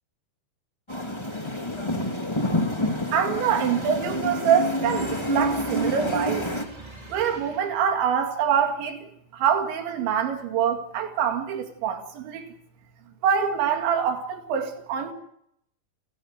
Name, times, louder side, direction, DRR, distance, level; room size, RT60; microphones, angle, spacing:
sound 1, 0.9-6.6, left 1 dB, 25° left, 0.6 m, -28 dB
voice 1, 3.1-6.5 7.1-12.5 13.2-15.1, right 8 dB, 85° right, 4 dB, 4.6 m, -25 dB
sound 2, 4.9-8.1, right 2 dB, 15° right, 1.5 m, -43 dB
29.5 x 15.5 x 6.5 m, 0.71 s
omnidirectional pair, 5.1 m